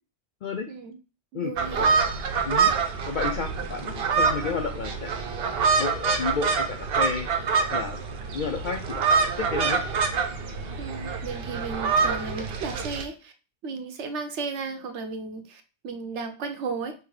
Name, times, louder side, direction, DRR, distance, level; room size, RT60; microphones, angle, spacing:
voice 1, 0.7-1.0 1.3-1.9 10.8-13.3 13.6-16.9, right 4 dB, 85° right, 6 dB, 1.1 m, -34 dB
voice 2, 1.3-1.9 2.4-2.7 3.1-7.3 7.7-8.0 8.3-9.1 9.4-9.8, left 5 dB, 55° left, 4 dB, 0.5 m, -32 dB
sound 1, 1.6-13.0, right 5 dB, 60° right, 0.9 m, -26 dB
5.5 x 3.0 x 3.2 m, 0.35 s
omnidirectional pair, 1.2 m